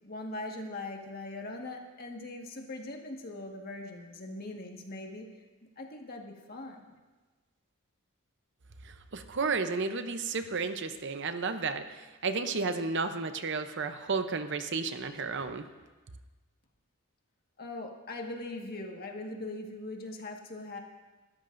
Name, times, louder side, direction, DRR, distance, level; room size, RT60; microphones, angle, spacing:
voice 1, 0.0-5.3 5.8-7.0 17.6-20.8, left 2 dB, 45° left, 1 dB, 1.7 m, -41 dB
voice 2, 8.8-15.7, right 4 dB, 55° right, 9 dB, 0.8 m, -32 dB
27.5 x 13.5 x 2.6 m, 1.3 s
head